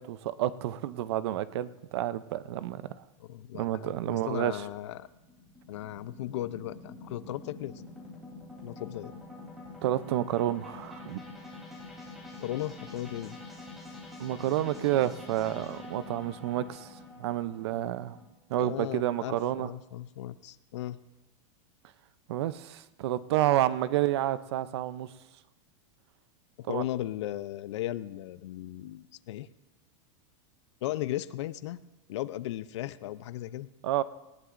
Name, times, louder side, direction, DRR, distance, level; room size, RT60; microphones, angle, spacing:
voice 1, 0.0-3.0 3.6-4.6 9.8-11.2 14.2-18.2 18.5-19.7 22.3-25.1 26.7-26.8 33.8-34.0, right 13 dB, 55° right, 15 dB, 0.6 m, -30 dB
voice 2, 3.2-5.1 5.7-7.8 8.6-9.1 12.4-13.4 18.6-21.0 26.6-29.5 30.8-31.8 32.1-33.7, left 14 dB, 60° left, 16 dB, 0.5 m, -36 dB
sound 1, 4.0-18.3, left 2 dB, ahead, 3.1 m, -46 dB
19.0 x 17.5 x 2.5 m, 1.1 s
supercardioid pair, 175°, 17 cm